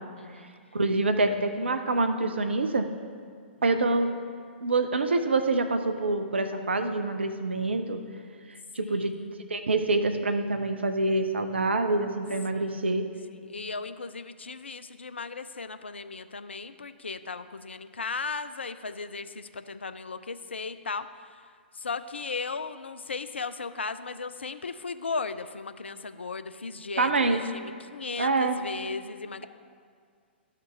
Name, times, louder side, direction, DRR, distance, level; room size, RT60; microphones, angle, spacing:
voice 1, 0.2-0.5 8.8-9.4 12.5-13.0 13.3-21.4 21.7-29.5, left 4 dB, 75° left, 12 dB, 0.4 m, -36 dB
voice 2, 0.7-2.9 3.6-4.1 4.6-8.0 8.7-9.1 9.5-13.0 27.0-27.5 28.2-28.6, right 2 dB, 70° right, 7 dB, 0.6 m, -26 dB
12.5 x 5.7 x 3.4 m, 2.1 s
figure-of-eight pair, 115°, 6 cm